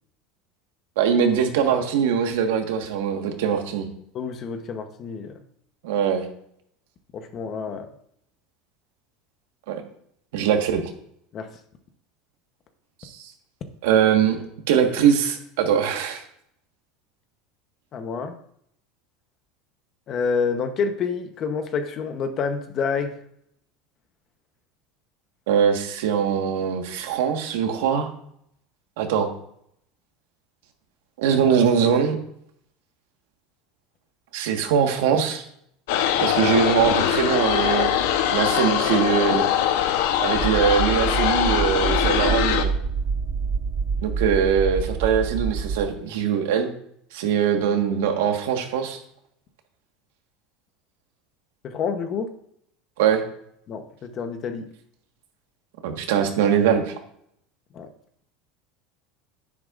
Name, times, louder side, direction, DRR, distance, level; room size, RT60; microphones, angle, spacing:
voice 1, 1.0-3.9 5.8-6.2 9.7-9.8 10.3-10.8 13.0-13.3 13.8-16.2 25.5-28.1 29.0-29.3 31.2-32.2 34.3-35.4 36.2-37.9 38.3-39.5 40.2-42.7 44.0-46.7 47.1-49.0 53.0-53.2 55.8-56.9, right 7 dB, 85° right, 4 dB, 1.5 m, -22 dB
voice 2, 4.1-5.3 7.1-7.9 11.3-11.5 17.9-18.4 20.1-23.1 51.6-52.3 53.7-54.6 57.7-57.9, left 5 dB, 30° left, 8 dB, 0.9 m, -28 dB
sound 1, 35.9-42.6, left 10 dB, 75° left, 0.8 m, -22 dB
sound 2, 40.3-45.8, right 5 dB, 25° right, 0.6 m, -27 dB
10.0 x 9.8 x 2.5 m, 0.69 s
cardioid pair, 165°, 0 cm